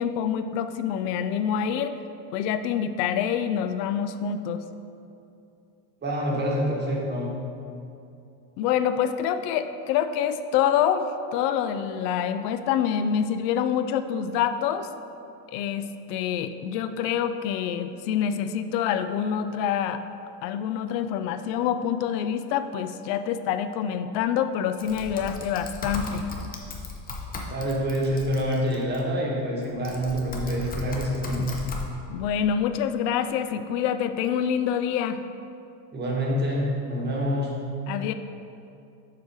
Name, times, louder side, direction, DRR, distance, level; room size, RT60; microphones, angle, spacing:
voice 1, 0.0-2.0 2.3-4.6 8.6-14.9 15.5-20.0 20.4-26.3 31.4-31.5 32.1-35.2 37.9-38.1, left 8 dB, 75° left, 10 dB, 0.6 m, -26 dB
voice 2, 6.0-7.3 27.5-31.5 35.9-37.5, equal, 20° right, -2 dB, 1.1 m, -26 dB
Typing, 24.8-29.0 29.6-31.8, left 3 dB, 20° left, 0.6 m, -36 dB
7.0 x 4.8 x 4.5 m, 2.6 s
supercardioid pair, 140°, 49 cm